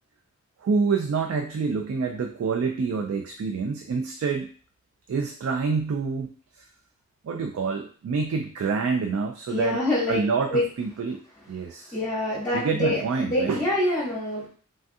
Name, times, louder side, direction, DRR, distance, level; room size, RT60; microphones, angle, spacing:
voice 1, 0.6-4.5 5.1-6.3 6.6-6.7 7.2-9.8 10.1-11.2 11.5-12.0 12.5-13.6, right 5 dB, 75° right, 4 dB, 0.3 m, -27 dB
voice 2, 9.5-10.6 11.9-14.5, left 1 dB, 10° left, -8 dB, 0.8 m, -26 dB
3.3 x 2.3 x 2.6 m, 0.43 s
head